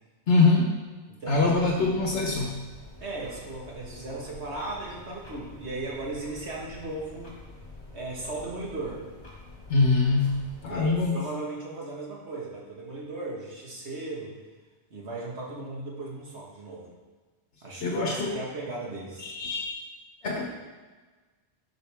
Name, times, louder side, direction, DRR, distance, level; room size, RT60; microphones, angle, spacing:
voice 1, 0.3-0.8 1.3-2.6 9.7-10.3 10.6-11.2 17.8-18.4 19.2-19.8 20.2-20.5, left 3 dB, 70° left, -1 dB, 1.2 m, -23 dB
voice 2, 1.1-1.5 3.0-7.3 7.9-9.0 10.6-14.3 14.9-16.9 17.6-19.3, right 2 dB, 75° right, -3 dB, 1.9 m, -36 dB
sound 1, 1.3-10.9, left 2 dB, 45° left, 2.5 m, -47 dB
12.0 x 5.5 x 3.5 m, 1.3 s
omnidirectional pair, 1.1 m